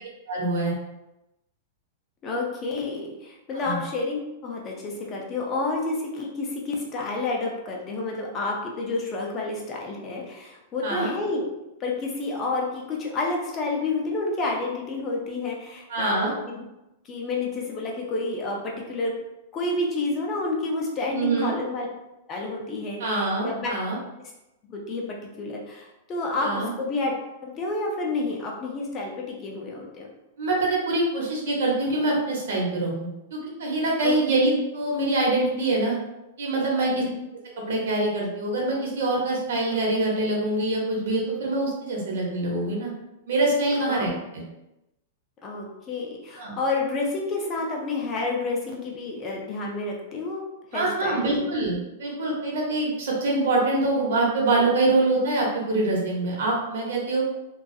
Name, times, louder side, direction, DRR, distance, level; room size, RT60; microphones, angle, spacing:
voice 1, 0.3-0.7 3.5-3.8 10.8-11.1 15.9-16.3 21.1-21.5 23.0-24.0 26.4-26.7 30.4-36.0 36.4-36.9 37.7-42.9 43.3-44.1 46.4-46.5 50.7-57.2, right 2 dB, 75° right, -2 dB, 0.9 m, -24 dB
voice 2, 2.2-11.5 11.8-16.6 17.1-19.1 19.5-21.9 22.3-23.7 24.7-25.0 25.4-27.1 27.4-30.1 34.0-34.2 36.9-37.2 43.9-44.0 45.4-50.4 50.7-51.4, left 3 dB, 20° left, -1 dB, 0.4 m, -29 dB
2.3 x 2.3 x 2.6 m, 0.94 s
supercardioid pair, 170°, 0 cm